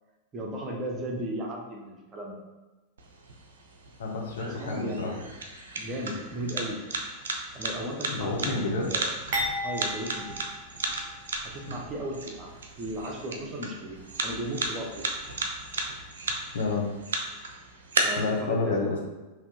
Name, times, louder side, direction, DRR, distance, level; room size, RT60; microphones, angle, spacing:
voice 1, 0.3-2.4 4.4-5.2 5.7-6.9 7.5-8.5 8.8-9.0 9.6-10.4 11.4-12.5 12.8-15.1 18.0-18.9, right 1 dB, 25° right, -1 dB, 0.8 m, -35 dB
sound 1, 3.0-18.0, right 3 dB, 65° right, 0.5 m, -35 dB
voice 2, 4.0-5.1 8.1-8.9 16.5-16.9 18.2-19.0, left 3 dB, 60° left, -1 dB, 0.8 m, -29 dB
sound 2, 9.3-11.5 11.8-12.0 12.9-13.0, equal, 45° right, 1.1 m, -34 dB
4.4 x 2.8 x 2.8 m, 1.2 s
figure-of-eight pair, 90°, 0 cm